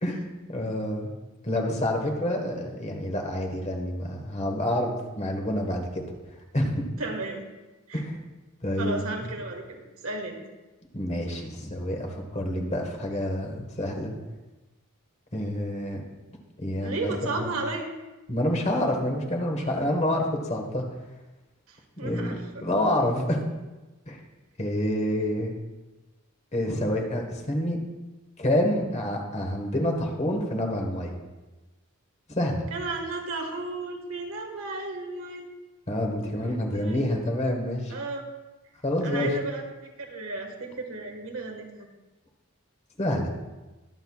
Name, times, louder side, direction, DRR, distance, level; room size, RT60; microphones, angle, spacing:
voice 1, 0.5-1.1 1.4-6.0 6.5-6.8 7.9-8.2 8.6-9.0 10.9-14.1 15.3-16.0 16.6-17.5 18.3-20.8 22.0-23.4 24.1-24.2 24.6-25.5 26.5-27.8 28.4-31.2 32.3-32.6 35.9-37.9 38.8-39.3 43.0-43.3, left 1 dB, 30° left, 2 dB, 1.4 m, -28 dB
voice 2, 7.0-7.4 7.9-8.0 8.8-10.4 16.8-17.9 21.7-22.6 32.7-35.5 36.4-37.1 37.9-38.2 39.0-39.6 40.0-41.9, right 3 dB, 75° right, 3 dB, 1.6 m, -34 dB
22.0 x 7.9 x 2.4 m, 1.1 s
head